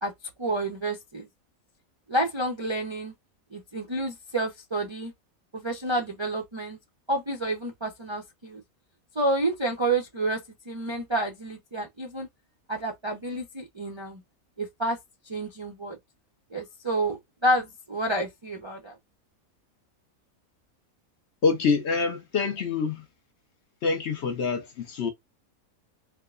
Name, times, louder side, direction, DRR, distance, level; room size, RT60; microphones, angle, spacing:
voice 1, 0.4-1.3 2.1-3.1 3.5-5.1 5.5-6.8 7.1-8.6 9.1-12.3 12.7-14.2 14.6-15.0 15.3-16.0 16.5-19.0, right 1 dB, 35° right, 0.5 m, -29 dB
voice 2, 21.4-23.1 23.8-25.1, left 5 dB, 60° left, 0.9 m, -26 dB
4.5 x 2.1 x 2.3 m
omnidirectional pair, 1.5 m